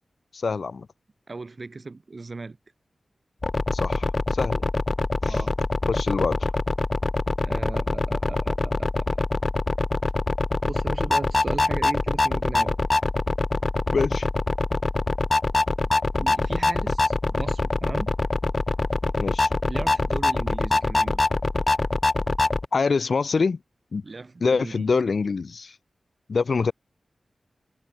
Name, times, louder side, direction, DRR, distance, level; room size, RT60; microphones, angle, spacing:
voice 1, 0.3-0.9 3.7-4.6 5.2-5.4 5.9-6.5 13.9-14.3 19.2-19.5 22.7-23.6 23.9-24.0 24.4-25.8 26.3-26.7, left 4 dB, 70° left, 0.4 m, -25 dB
voice 2, 1.3-2.6 5.2-5.5 7.4-9.3 10.6-12.8 16.2-18.1 19.7-21.2 24.0-25.0, right 3 dB, 50° right, 5.8 m, -37 dB
sound 1, 3.4-22.7, left 2 dB, 40° left, 1.2 m, -24 dB
wide cardioid pair, 70°, 0 cm